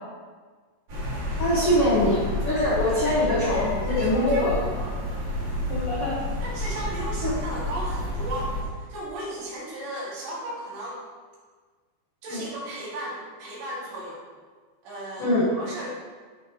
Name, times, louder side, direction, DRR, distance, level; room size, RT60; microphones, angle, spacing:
sound 1, 0.9-8.6, left 1 dB, 50° right, 3.2 m, -30 dB
voice 1, 1.4-2.2 2.5-4.6 5.7-6.2 7.2-7.3 12.3-12.4 15.2-15.5, left 1 dB, 70° left, -7 dB, 1.3 m, -23 dB
voice 2, 2.7-4.9 5.7-5.8 6.4-11.0 12.2-14.2 14.8-15.9, right 1 dB, 75° right, -7 dB, 4.5 m, -35 dB
13.5 x 5.1 x 3.1 m, 1.5 s
omnidirectional pair, 5.1 m